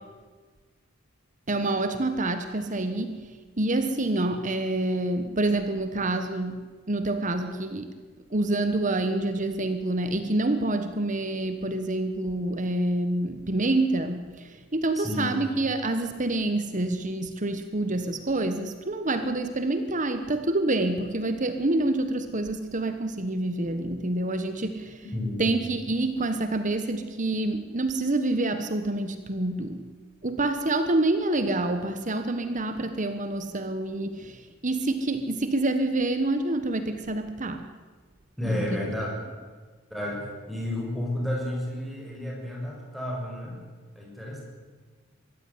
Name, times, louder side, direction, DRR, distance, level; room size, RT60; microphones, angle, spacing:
voice 1, 1.5-3.3 3.6-7.9 8.3-25.0 25.4-29.8 30.2-37.7 38.4-38.9, right 2 dB, 35° right, 8 dB, 1.3 m, -27 dB
voice 2, 14.9-15.4 25.1-25.5 38.4-39.1 39.9-43.6 43.9-44.4, left 1 dB, ahead, -3 dB, 6.7 m, -31 dB
22.5 x 15.0 x 9.8 m, 1.5 s
head